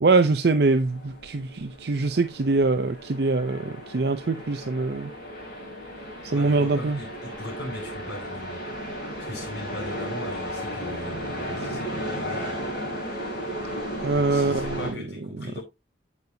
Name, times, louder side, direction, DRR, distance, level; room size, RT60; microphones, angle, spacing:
voice 1, 0.0-5.1 6.2-7.0 14.0-14.8, right 3 dB, 60° right, 0.5 m, -23 dB
sound 1, 0.7-14.9, equal, 50° left, 6.2 m, -34 dB
voice 2, 6.3-8.6 9.2-12.6 14.1-15.6, left 1 dB, 65° left, 5.9 m, -39 dB
8.5 x 8.4 x 2.7 m
head